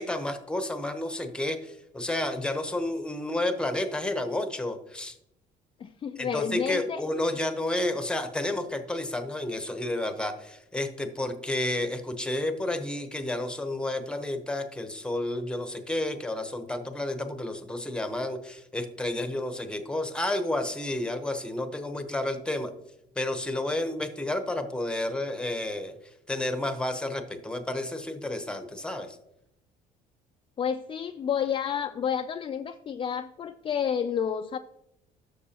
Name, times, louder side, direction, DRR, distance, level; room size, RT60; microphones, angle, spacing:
voice 1, 0.0-5.2 6.2-22.7 23.2-25.9 26.3-29.2, left 1 dB, 5° left, 8 dB, 0.9 m, -31 dB
voice 2, 5.8-7.4 30.6-34.6, left 8 dB, 30° left, 7 dB, 0.4 m, -30 dB
12.0 x 6.4 x 2.9 m, 0.81 s
cardioid pair, 110°, 17 cm